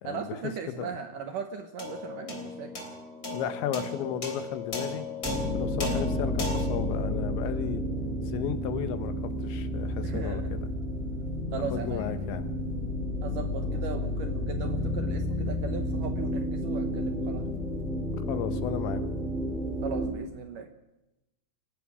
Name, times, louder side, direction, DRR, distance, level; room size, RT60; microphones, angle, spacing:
voice 1, 0.0-2.7 10.0-10.5 11.5-12.2 13.2-17.6 19.8-20.7, right 6 dB, 70° right, 7 dB, 2.1 m, -38 dB
sound 1, 1.8-8.4, left 3 dB, 25° left, 3.7 m, -36 dB
voice 2, 3.3-5.1 5.5-7.8 8.3-10.6 11.7-12.5 13.6-13.8 18.3-19.0, left 9 dB, 80° left, 11 dB, 3.5 m, -34 dB
sound 2, 5.2-20.1, left 1 dB, ahead, 3.5 m, -31 dB
29.0 x 16.0 x 6.3 m, 0.94 s
omnidirectional pair, 5.1 m